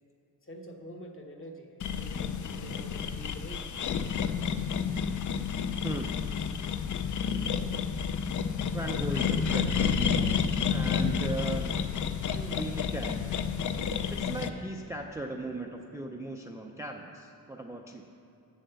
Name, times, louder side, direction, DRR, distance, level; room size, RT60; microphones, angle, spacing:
voice 1, 0.4-3.7, equal, 35° left, 2 dB, 1.0 m, -46 dB
sound 1, 1.8-14.5, left 6 dB, 55° left, 0.5 m, -30 dB
voice 2, 5.8-6.2 8.7-11.7 12.2-13.2 14.1-18.1, right 2 dB, 10° right, 2 dB, 0.3 m, -38 dB
8.1 x 7.3 x 6.8 m, 2.7 s
wide cardioid pair, 175°, 37 cm